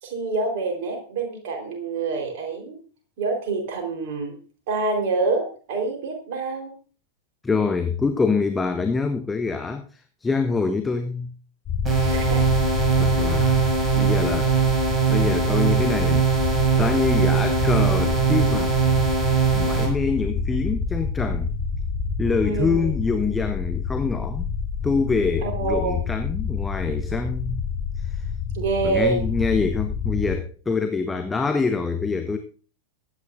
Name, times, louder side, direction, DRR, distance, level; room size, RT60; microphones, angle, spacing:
voice 1, 0.0-2.8 3.2-4.4 4.7-6.7 12.0-12.4 17.1-17.4 22.4-22.9 25.4-26.0 28.5-29.2, right 3 dB, 50° right, 2 dB, 4.1 m, -26 dB
voice 2, 7.4-11.3 13.0-13.6 14.0-14.6 15.1-16.2 16.8-18.7 19.5-21.5 22.2-24.5 24.8-27.6 28.0-28.2 28.8-32.4, left 4 dB, 10° left, 7 dB, 0.8 m, -25 dB
sound 1, 11.7-30.4, left 5 dB, 30° left, 4.7 m, -28 dB
sound 2, 11.9-19.9, right 7 dB, 20° right, 6.6 m, -21 dB
22.0 x 9.6 x 2.6 m, 0.39 s
figure-of-eight pair, 90°, 0 cm